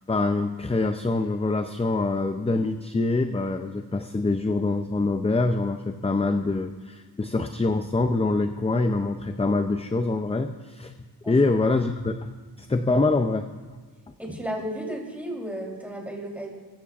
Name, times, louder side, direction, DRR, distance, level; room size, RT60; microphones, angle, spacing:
voice 1, 0.1-10.9 11.3-12.2 12.6-13.5, left 3 dB, 15° left, 7 dB, 0.4 m, -25 dB
voice 2, 14.2-16.5, equal, 5° right, -2 dB, 3.5 m, -33 dB
22.0 x 14.0 x 2.5 m, 1.4 s
wide cardioid pair, 100°, 43 cm